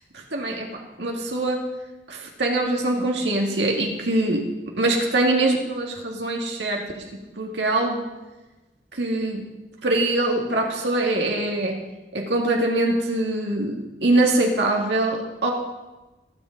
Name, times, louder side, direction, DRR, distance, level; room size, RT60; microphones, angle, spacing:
voice 1, 0.1-1.6 2.1-4.4 4.8-8.0 8.9-9.5 9.8-11.8 12.1-15.5, right 2 dB, 80° right, 0 dB, 2.0 m, -23 dB
22.5 x 8.2 x 3.9 m, 1.1 s
head